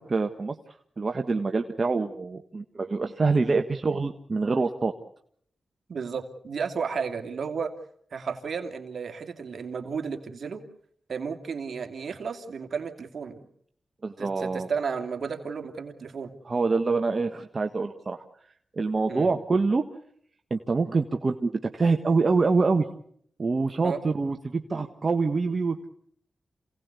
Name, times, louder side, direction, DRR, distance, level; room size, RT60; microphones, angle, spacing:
voice 1, 0.1-0.5 1.0-4.9 14.0-14.7 16.4-18.2 18.7-19.8 20.5-22.9 23.4-25.9, right 4 dB, 50° right, 5 dB, 1.4 m, -25 dB
voice 2, 5.9-7.7 8.1-10.6 11.1-13.4 14.2-16.3 19.1-19.3 23.8-24.0, right 6 dB, 70° right, 5 dB, 2.7 m, -33 dB
27.5 x 18.0 x 8.4 m, 0.68 s
cardioid pair, 45°, 0 cm